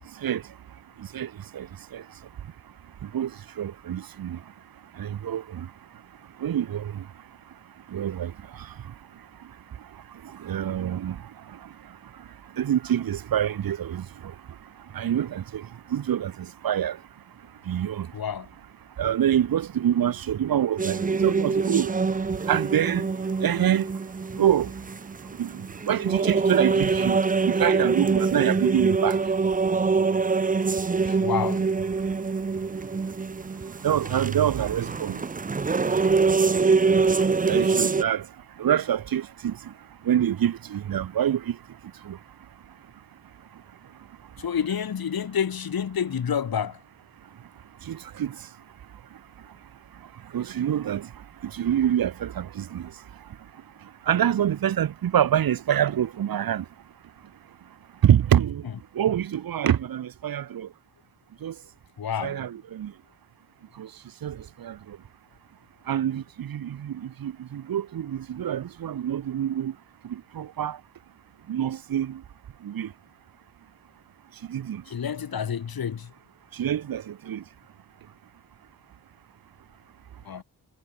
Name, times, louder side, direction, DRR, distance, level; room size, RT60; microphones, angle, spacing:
voice 1, 1.0-1.7 1.9-2.0 3.0-4.4 5.0-5.7 6.4-7.1 7.9-8.7 10.2-11.7 12.6-14.3 14.9-17.0 17.7-18.1 19.0-22.0 22.5-23.1 23.4-23.9 24.4-24.7 25.4-29.2 33.8-35.3 37.4-38.3 38.6-39.7 40.0-41.6 42.0-42.2 47.8-48.4 50.3-51.1 51.4-52.9 54.1-56.6 58.0-58.6 58.9-60.7 61.4-61.5 62.2-62.9 63.8-63.9 64.2-65.0 65.9-69.7 70.0-70.8 71.5-72.2 72.6-72.9 74.5-74.8 76.5-77.4, right 10 dB, 65° right, 0.9 m, -26 dB
voice 2, 18.1-18.5 31.0-31.7 44.4-46.8 62.0-62.5 74.9-76.1 80.2-80.4, left 7 dB, 65° left, 3.5 m, -29 dB
sound 1, 20.8-38.0, right 4 dB, 20° right, 0.7 m, -24 dB
wide cardioid pair, 105°, 38 cm